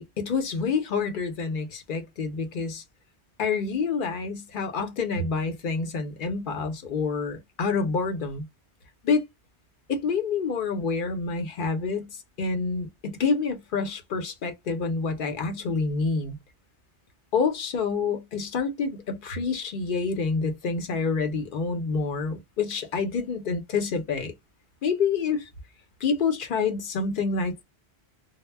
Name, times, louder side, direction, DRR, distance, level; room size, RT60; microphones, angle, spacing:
voice 1, 0.0-2.8 3.4-8.4 9.0-9.2 9.9-12.1 12.4-16.4 17.3-24.3 24.8-25.5 26.0-27.6, left 4 dB, 55° left, 0.7 m, -27 dB
2.1 x 2.0 x 3.1 m
omnidirectional pair, 1.1 m